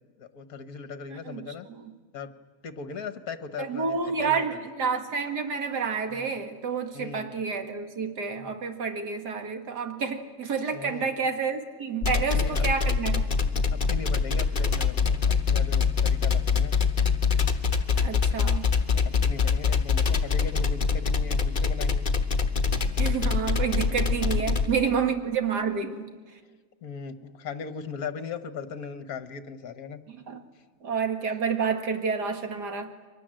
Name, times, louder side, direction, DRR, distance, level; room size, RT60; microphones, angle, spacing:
voice 1, 0.2-1.7 2.1-2.3 2.6-4.5 6.1-6.3 6.9-7.3 8.3-8.5 10.7-11.1 12.3-12.7 13.9-16.8 19.2-22.1 24.4-24.5 26.8-30.0, left 5 dB, 60° left, 11 dB, 1.7 m, -38 dB
voice 2, 3.6-13.2 17.9-18.7 23.0-26.1 30.1-30.4 30.8-32.9, right 5 dB, 70° right, 6 dB, 2.3 m, -29 dB
sound 1, 12.0-24.7, left 5 dB, 30° left, 1.3 m, -24 dB
29.5 x 23.5 x 7.6 m, 1.5 s
omnidirectional pair, 1.9 m